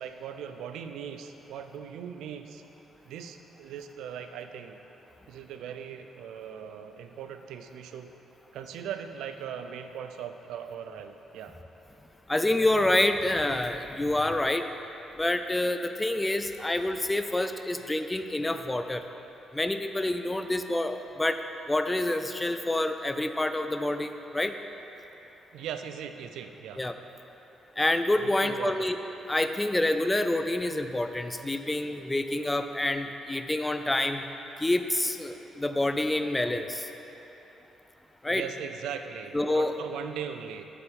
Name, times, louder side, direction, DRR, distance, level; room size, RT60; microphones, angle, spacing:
voice 1, 0.0-2.6 3.0-4.8 5.3-8.1 8.5-11.6 25.5-26.8 28.2-28.9 38.3-40.6, right 8 dB, 85° right, 8 dB, 0.4 m, -39 dB
voice 2, 12.3-14.6 15.2-19.0 19.5-21.4 21.7-24.5 26.8-26.9 27.8-29.0 29.3-34.2 34.6-36.9 38.2-38.4 39.3-39.7, left 1 dB, 15° left, 8 dB, 0.3 m, -27 dB
8.2 x 6.9 x 3.6 m, 3.0 s
cardioid pair, 90°, 0 cm